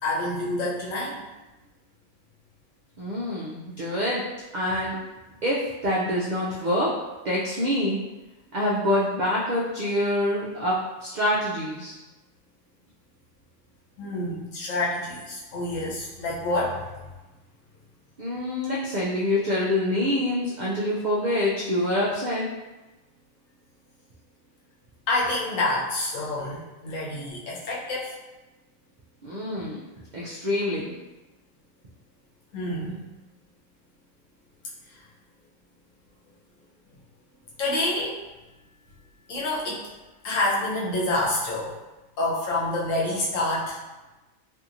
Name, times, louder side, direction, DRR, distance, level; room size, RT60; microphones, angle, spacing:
voice 1, 0.0-1.2 14.0-16.8 25.1-28.1 32.5-33.0 34.9-35.0 37.6-38.2 39.3-39.9 40.2-41.7 42.2-43.8, left 2 dB, 85° left, -5 dB, 1.1 m, -27 dB
voice 2, 3.0-4.2 4.5-5.0 5.4-6.9 7.2-8.0 8.5-10.7 11.0-11.9 18.2-22.5 29.2-29.8 30.1-30.9, left 1 dB, 80° right, -5 dB, 0.4 m, -26 dB
2.8 x 2.6 x 2.4 m, 1.1 s
omnidirectional pair, 1.3 m